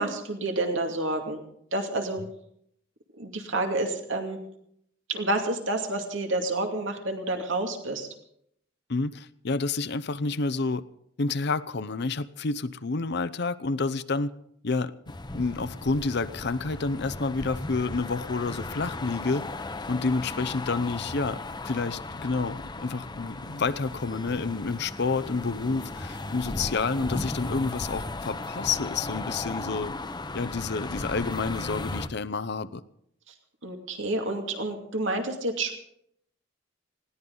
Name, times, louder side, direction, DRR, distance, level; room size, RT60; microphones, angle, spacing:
voice 1, 0.0-1.4 1.7-2.2 3.1-4.4 5.1-8.1 33.3-33.4 33.6-35.8, right 2 dB, 75° right, 3 dB, 2.5 m, -29 dB
voice 2, 8.9-10.8 11.2-14.3 14.6-15.0 15.3-19.4 19.9-21.4 21.6-29.9 30.3-32.8, left 4 dB, 60° left, 14 dB, 0.8 m, -29 dB
sound 1, 15.1-32.1, left 2 dB, 25° left, 0.9 m, -36 dB
20.0 x 17.0 x 4.0 m, 0.71 s
head